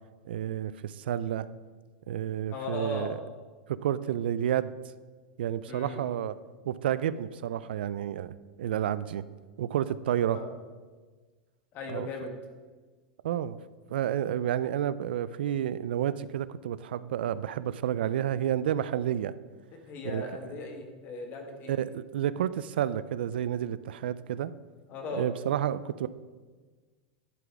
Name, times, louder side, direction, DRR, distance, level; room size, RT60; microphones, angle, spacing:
voice 1, 0.3-1.5 2.1-3.2 3.7-4.7 5.4-6.4 6.7-9.2 9.6-10.4 11.9-12.1 13.2-13.6 13.9-19.3 20.0-20.2 21.7-24.5 25.2-26.1, right 10 dB, 90° right, 16 dB, 0.3 m, -30 dB
voice 2, 2.5-3.2 5.7-6.0 10.3-10.5 11.7-12.3 19.9-21.7 24.9-25.3, left 2 dB, 40° left, 3 dB, 1.5 m, -37 dB
11.0 x 4.0 x 4.7 m, 1.4 s
supercardioid pair, 140°, 5 cm